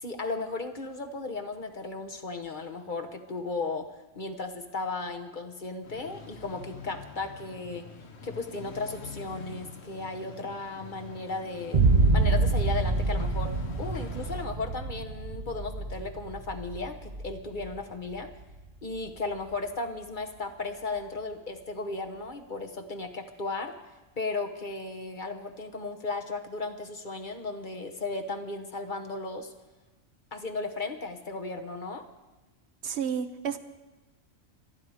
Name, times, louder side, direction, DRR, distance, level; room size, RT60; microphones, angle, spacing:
voice 1, 0.0-3.9 4.1-7.9 8.2-11.8 12.1-13.5 13.8-18.3 18.8-23.8 24.2-29.5 30.3-32.0, left 3 dB, 40° left, 5 dB, 1.2 m, -35 dB
sound 1, 5.8-14.5, left 4 dB, 60° left, 1.6 m, -45 dB
Boom, 11.7-19.6, right 3 dB, 35° right, 1.0 m, -27 dB
voice 2, 32.8-33.6, right 7 dB, 65° right, 10 dB, 1.0 m, -31 dB
25.0 x 9.5 x 4.9 m, 1.1 s
omnidirectional pair, 1.3 m